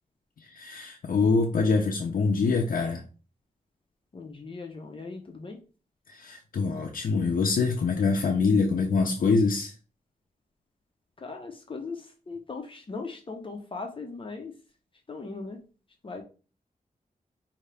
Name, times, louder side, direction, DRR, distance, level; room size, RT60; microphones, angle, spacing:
voice 1, 0.5-3.0 6.1-9.7, left 4 dB, 80° left, 0.7 m, -25 dB
voice 2, 4.1-5.6 11.2-14.5 15.1-15.6 16.0-16.2, left 4 dB, 40° left, 0.9 m, -39 dB
5.3 x 2.9 x 3.4 m
wide cardioid pair, 130°, 14 cm